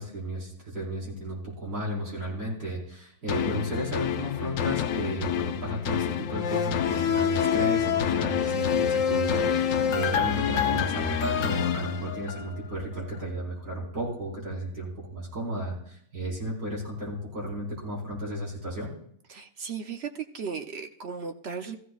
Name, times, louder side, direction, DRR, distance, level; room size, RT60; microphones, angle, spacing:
voice 1, 0.0-18.9, equal, 70° right, -4 dB, 5.0 m, -34 dB
sound 1, 3.3-12.7 13.1-13.2, left 8 dB, 60° left, 0.9 m, -27 dB
voice 2, 19.3-21.8, right 6 dB, 55° right, 6 dB, 0.8 m, -36 dB
15.0 x 15.0 x 2.4 m, 0.68 s
omnidirectional pair, 1.7 m